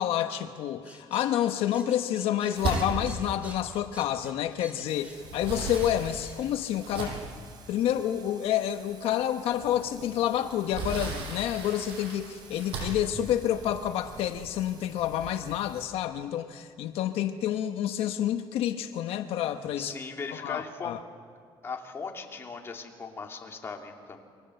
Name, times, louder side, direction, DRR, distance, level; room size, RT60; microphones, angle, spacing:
voice 1, 0.0-7.1 7.7-19.9 20.4-21.0, left 11 dB, 80° left, 7 dB, 1.2 m, -29 dB
sound 1, 0.8-6.7, right 1 dB, 15° right, 3.4 m, -50 dB
sound 2, 2.5-4.7 5.0-7.4 8.1-8.2 8.6-8.8 10.1-14.4, right 3 dB, 70° right, 7.6 m, -36 dB
Thunder / Rain, 4.9-15.9, right 5 dB, 45° right, 3.7 m, -51 dB
voice 2, 19.8-21.0 21.6-24.2, left 5 dB, 25° left, 1 dB, 2.8 m, -38 dB
29.0 x 23.5 x 7.9 m, 2.1 s
cardioid pair, 145°, 10 cm